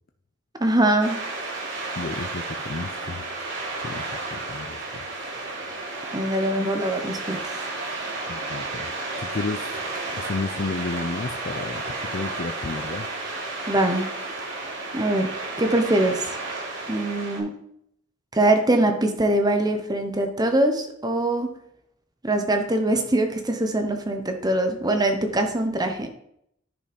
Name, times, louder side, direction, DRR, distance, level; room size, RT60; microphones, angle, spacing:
voice 1, 0.6-1.3 6.1-7.4 13.7-14.1 14.9-16.3 16.9-17.6 18.3-21.5 22.2-26.1, right 1 dB, 20° right, 6 dB, 0.9 m, -23 dB
sound 1, 1.0-17.4, right 2 dB, 65° right, 4.0 m, -32 dB
voice 2, 1.9-3.3 3.8-5.2 8.3-9.7 10.2-13.1, left 3 dB, 50° left, 6 dB, 0.5 m, -32 dB
10.0 x 5.2 x 5.2 m, 0.72 s
head